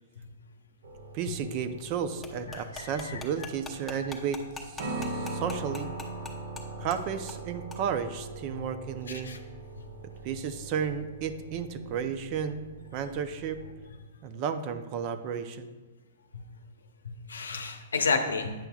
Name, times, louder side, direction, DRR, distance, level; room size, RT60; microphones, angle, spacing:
sound 1, 0.8-13.9, right 2 dB, 70° right, 1.1 m, -41 dB
voice 1, 1.1-5.9 6.8-9.4 10.2-12.7 12.9-13.6 14.2-15.7, right 7 dB, 40° right, 10 dB, 0.5 m, -33 dB
sound 2, 2.2-6.6 6.9-7.0 7.3-7.4 7.7-7.8, left 3 dB, 5° left, 0.9 m, -41 dB
voice 2, 2.5-3.2 4.0-4.1 9.1-9.4 17.0-18.5, left 4 dB, 90° left, 7 dB, 0.7 m, -31 dB
9.0 x 5.7 x 2.4 m, 1.3 s
hypercardioid pair, 130°, 0 cm